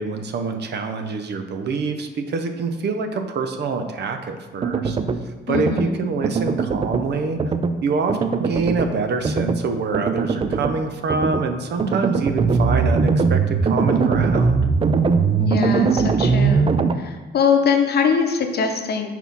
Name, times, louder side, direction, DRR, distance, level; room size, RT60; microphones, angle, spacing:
voice 1, 0.0-5.0 5.5-7.4 7.8-14.6, right 4 dB, 60° right, 6 dB, 0.7 m, -25 dB
sound 1, 4.6-5.2 5.5-5.9 6.2-7.1 7.4-7.7 8.1-8.9 9.2-9.6 9.9-10.8 11.1-11.4 11.8-16.9, right 5 dB, 30° right, 0.4 m, -20 dB
voice 2, 5.5-6.0 15.4-19.1, left 6 dB, 55° left, 5 dB, 0.8 m, -22 dB
4.5 x 4.1 x 5.3 m, 1.2 s
cardioid pair, 90°, 20 cm